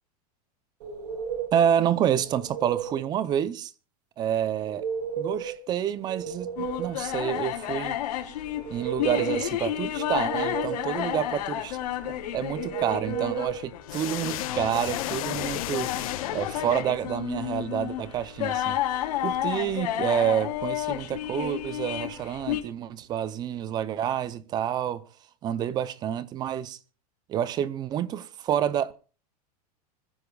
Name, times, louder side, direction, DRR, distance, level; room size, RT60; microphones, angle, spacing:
sound 1, 0.8-1.7 2.1-3.0 4.6-5.6 5.9-7.1 8.5-9.5 9.9-11.0 12.5-13.6, right 7 dB, 85° right, 3.1 m, -33 dB
voice 1, 1.5-3.7 4.2-4.9 5.2-8.0 8.7-11.8 12.1-18.8 19.2-25.0 25.4-26.8 27.3-28.9, right 10 dB, 20° right, 0.6 m, -28 dB
sound 2, 6.6-22.6, left 12 dB, 85° left, 3.7 m, -31 dB
sound 3, 13.9-17.3, left 15 dB, 60° left, 1.5 m, -34 dB
25.0 x 14.5 x 2.3 m
supercardioid pair, 165°, 20 cm